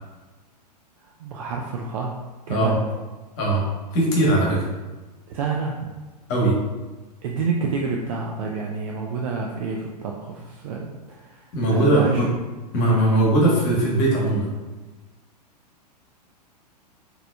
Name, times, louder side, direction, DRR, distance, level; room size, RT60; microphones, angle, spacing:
voice 1, 1.2-2.8 5.3-5.9 7.2-12.3, right 4 dB, 50° right, 0 dB, 0.4 m, -29 dB
voice 2, 3.9-4.6 6.3-6.5 11.5-12.3 12.7-14.5, right 1 dB, 45° left, -4 dB, 1.2 m, -19 dB
4.0 x 2.8 x 2.3 m, 1.2 s
figure-of-eight pair, 100°, 21 cm